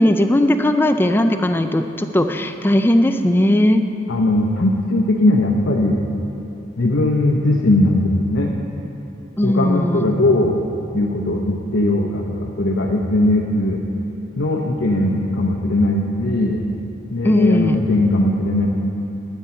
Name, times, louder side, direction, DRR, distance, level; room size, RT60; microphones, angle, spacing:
voice 1, 0.0-3.8 9.4-10.1 17.2-17.8, left 1 dB, 10° left, 7 dB, 0.4 m, -17 dB
voice 2, 4.1-6.0 6.8-8.5 9.4-10.7 10.9-13.8 14.3-16.6 17.1-18.7, left 1 dB, 70° left, -1 dB, 0.8 m, -19 dB
12.0 x 9.9 x 4.4 m, 2.9 s
head